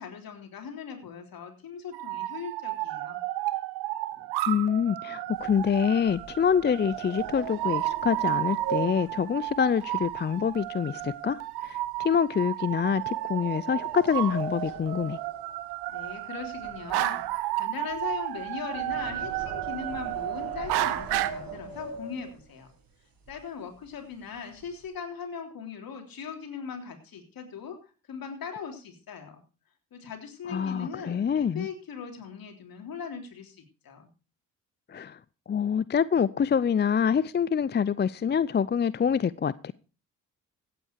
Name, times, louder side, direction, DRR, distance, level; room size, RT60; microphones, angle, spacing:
voice 1, 0.0-3.2 15.9-17.2 17.5-22.7 23.3-27.8 28.1-29.4 29.9-34.1, left 6 dB, 65° left, 3.5 m, -39 dB
sound 1, 1.9-21.3, right 16 dB, 80° right, 0.9 m, -32 dB
voice 2, 4.5-15.2 30.5-31.7 34.9-35.2 35.5-39.7, left 7 dB, 25° left, 0.5 m, -26 dB
sound 2, 5.3-10.7 11.0-11.3 11.8-12.0 12.8-16.1 16.4-22.6 23.2-23.3 23.6-23.9 24.2-24.9, right 5 dB, 60° right, 4.8 m, -41 dB
16.0 x 9.0 x 4.6 m
hypercardioid pair, 50°, 38 cm